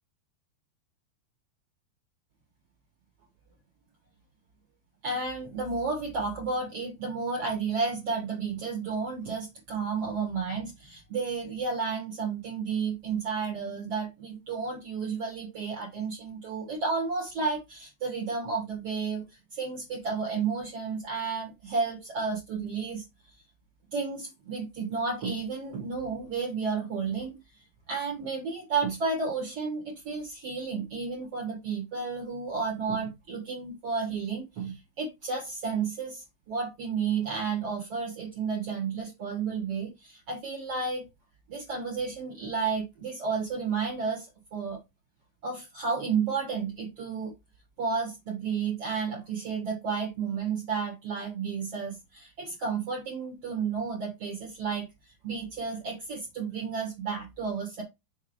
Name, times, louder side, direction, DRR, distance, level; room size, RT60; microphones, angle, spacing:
voice 1, 5.0-19.2 19.5-23.0 23.9-27.4 27.9-41.1 41.5-44.8 45.4-47.3 47.8-57.8, right 5 dB, 50° right, 2.1 m, -32 dB
6.4 x 3.6 x 4.8 m
omnidirectional pair, 4.7 m